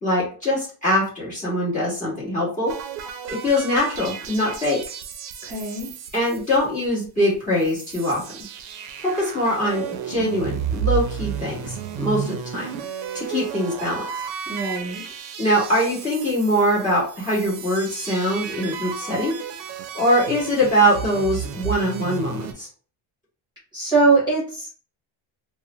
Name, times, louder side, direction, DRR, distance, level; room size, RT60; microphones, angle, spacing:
voice 1, 0.0-2.7 3.3-4.8 6.1-8.2 9.0-12.7 13.1-14.0 15.4-19.3 19.9-22.7, equal, 15° left, -8 dB, 1.3 m, -22 dB
sound 1, 2.7-7.1 7.3-7.4 7.6-22.5, right 8 dB, 70° right, 0.6 m, -33 dB
voice 2, 5.5-5.9 14.5-15.0 23.7-24.7, right 3 dB, 10° right, -7 dB, 1.1 m, -21 dB
2.6 x 2.2 x 2.9 m, 0.41 s
cardioid pair, 175°, 46 cm